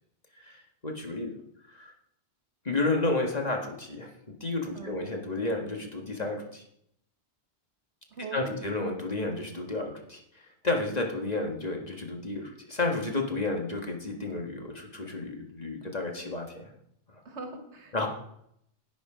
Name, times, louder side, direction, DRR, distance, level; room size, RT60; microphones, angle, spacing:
voice 1, 0.3-1.3 1.7-1.9 2.6-4.1 4.4-6.6 8.3-10.2 10.6-16.7 17.1-17.2 17.9-18.1, left 2 dB, 35° left, 2 dB, 1.8 m, -31 dB
voice 2, 4.7-5.1 8.1-8.6 17.2-18.1, right 3 dB, 75° right, 5 dB, 1.8 m, -41 dB
11.0 x 8.5 x 5.0 m, 0.73 s
omnidirectional pair, 1.2 m